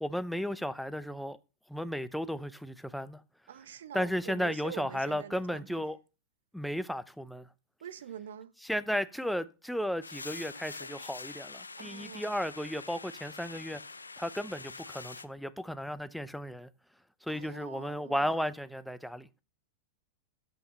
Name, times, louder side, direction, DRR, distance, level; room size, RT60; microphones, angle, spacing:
voice 1, 0.0-1.4 1.7-3.2 3.9-6.0 6.5-7.5 8.7-13.8 14.2-16.7 17.2-19.3, equal, ahead, 0.5 m, -34 dB
voice 2, 3.5-5.9 7.8-8.5 11.8-12.5 17.3-18.3, right 9 dB, 65° right, 0.7 m, -45 dB
sound 1, 10.0-15.3, left 4 dB, 80° left, 0.4 m, -45 dB
7.8 x 5.5 x 5.5 m
figure-of-eight pair, 95°, 0 cm